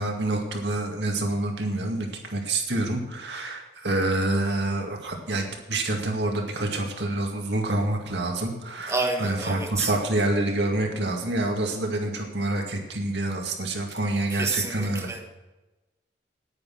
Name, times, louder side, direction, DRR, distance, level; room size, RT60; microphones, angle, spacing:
voice 1, 0.0-15.1, right 2 dB, 70° right, 2 dB, 2.2 m, -27 dB
voice 2, 8.9-9.9 14.3-15.3, right 3 dB, 15° right, 2 dB, 1.4 m, -29 dB
9.8 x 9.6 x 6.1 m, 1.1 s
head